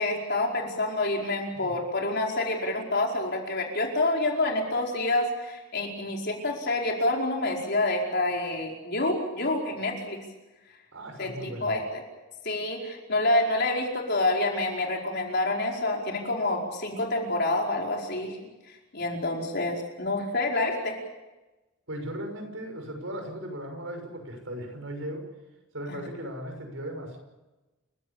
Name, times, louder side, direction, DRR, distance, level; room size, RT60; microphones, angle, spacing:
voice 1, 0.0-10.2 11.2-12.0 12.4-18.4 18.7-21.0 25.9-26.0, left 2 dB, 50° left, 0 dB, 5.0 m, -28 dB
voice 2, 10.9-11.8 21.9-25.2 25.7-27.2, right 1 dB, 65° right, 4 dB, 6.3 m, -37 dB
29.5 x 16.5 x 8.6 m, 1.1 s
head